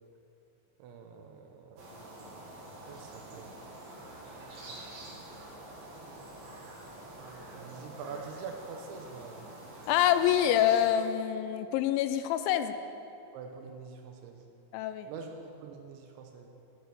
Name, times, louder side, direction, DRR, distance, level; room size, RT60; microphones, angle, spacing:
voice 1, 0.8-1.9 2.9-3.6 7.1-9.5 13.3-14.4 15.1-16.5, right 5 dB, 80° right, 3 dB, 3.2 m, -45 dB
sound 1, 1.8-10.9, right 1 dB, 55° right, 3.5 m, -46 dB
voice 2, 9.9-12.7 14.7-15.1, left 11 dB, 90° left, 9 dB, 3.0 m, -26 dB
15.0 x 9.7 x 6.7 m, 2.6 s
omnidirectional pair, 5.4 m